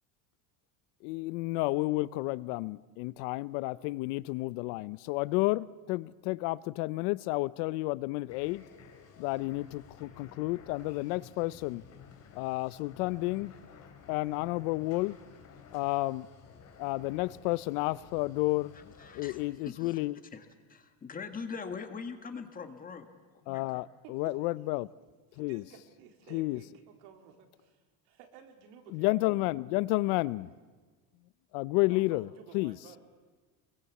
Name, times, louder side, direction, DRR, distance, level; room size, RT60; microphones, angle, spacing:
voice 1, 1.0-8.6 9.2-11.8 12.3-13.5 14.1-15.2 15.7-16.3 16.8-20.2 23.5-24.9 25.4-25.6 26.3-26.6 28.9-30.5 31.5-32.3 32.5-32.8, left 21 dB, 70° left, 20 dB, 0.7 m, -31 dB
sound 1, 8.3-19.5, left 7 dB, 35° left, 3.5 m, -54 dB
voice 2, 18.7-20.0 20.3-23.1 23.3-23.8, left 5 dB, 20° left, 7 dB, 1.5 m, -42 dB
voice 3, 24.0-24.6 25.3-29.1 31.9-33.0, right 8 dB, 70° right, 4 dB, 3.7 m, -54 dB
27.0 x 23.0 x 8.3 m, 1.3 s
cardioid pair, 165°, 47 cm